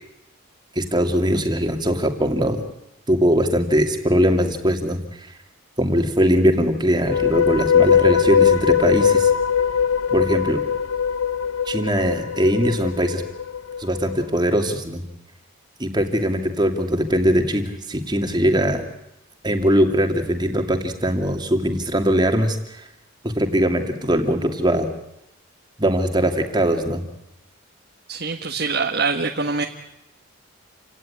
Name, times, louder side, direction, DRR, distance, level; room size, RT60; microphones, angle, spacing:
voice 1, 0.7-2.6 3.1-5.3 5.8-9.3 10.1-10.6 11.7-13.2 13.8-15.0 15.8-18.8 19.4-22.9 23.2-24.9 25.8-27.0, equal, 20° right, 5 dB, 2.4 m, -21 dB
sound 1, 6.9-14.2, left 7 dB, 90° left, 0.9 m, -20 dB
voice 2, 28.1-29.7, right 4 dB, 50° right, 4 dB, 1.5 m, -24 dB
29.0 x 17.5 x 9.8 m, 0.87 s
head